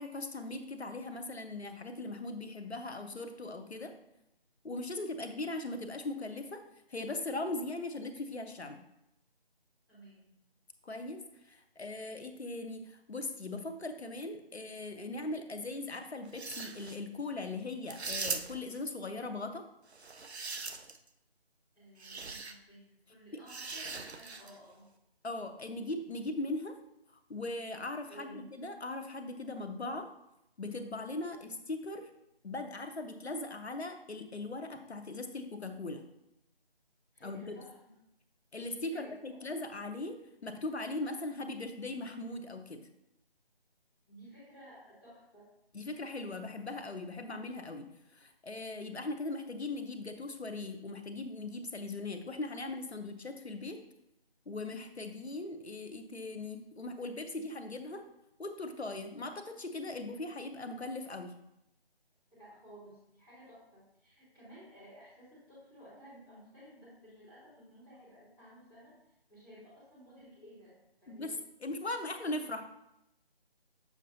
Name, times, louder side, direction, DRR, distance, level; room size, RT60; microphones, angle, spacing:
voice 1, 0.0-3.9 4.6-6.6 6.9-8.8 10.8-19.6 25.2-26.8 27.3-30.1 30.6-32.1 32.4-36.0 37.2-37.6 38.5-42.8 45.7-47.9 48.1-53.8 54.5-58.0 58.4-61.3 71.1-71.4 71.6-72.6, left 2 dB, 85° left, 7 dB, 0.9 m, -39 dB
voice 2, 9.9-10.3 21.7-24.9 28.1-28.5 31.3-31.4 37.1-37.8 38.9-39.4 44.1-45.5 62.3-71.4, equal, 5° left, -16 dB, 1.1 m, -55 dB
sound 1, 16.3-17.0 17.9-18.8 19.9-21.1 22.0-22.5 23.5-24.6, right 4 dB, 85° right, 0.7 m, -40 dB
7.3 x 5.1 x 2.7 m, 0.83 s
figure-of-eight pair, 160°, 32 cm